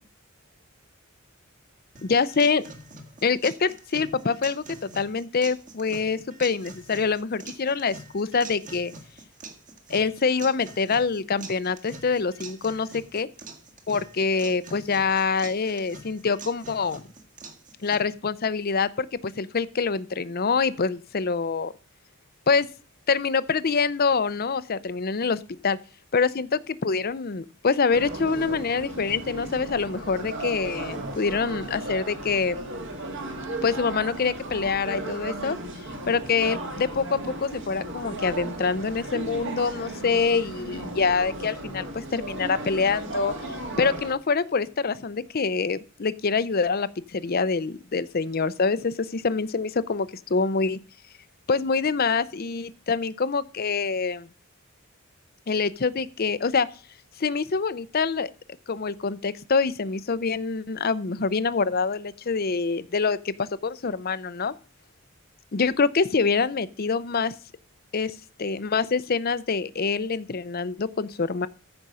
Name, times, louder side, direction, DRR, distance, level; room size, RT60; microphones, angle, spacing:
voice 1, 2.0-2.6 3.2-8.9 9.9-13.3 13.9-17.0 17.8-21.7 22.5-22.7 23.1-25.8 26.1-32.6 33.6-35.6 36.1-50.8 51.5-54.3 55.5-56.7 57.2-58.3 58.7-64.5 65.5-67.3 67.9-71.5, left 5 dB, 45° left, 16 dB, 0.6 m, -25 dB
sound 1, 2.0-18.0, right 3 dB, 35° right, 1.7 m, -45 dB
sound 2, 27.9-44.1, right 2 dB, 55° right, 2.0 m, -35 dB
14.5 x 5.2 x 5.6 m, 0.39 s
head